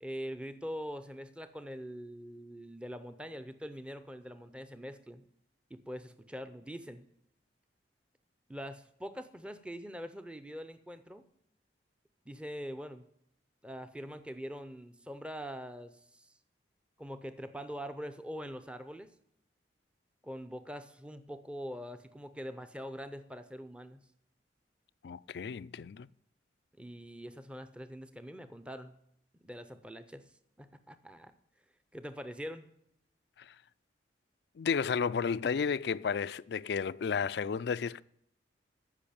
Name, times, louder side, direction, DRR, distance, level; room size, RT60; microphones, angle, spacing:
voice 1, 0.0-5.2 5.7-7.1 8.5-11.2 12.3-13.0 13.6-16.3 17.0-19.1 20.2-24.0 26.8-28.9 29.4-30.3 30.6-31.3 31.9-32.7, equal, 5° right, 0.6 m, -43 dB
voice 2, 25.0-26.1 33.4-33.6 34.6-38.0, left 6 dB, 60° left, 0.4 m, -32 dB
14.0 x 5.6 x 8.6 m
head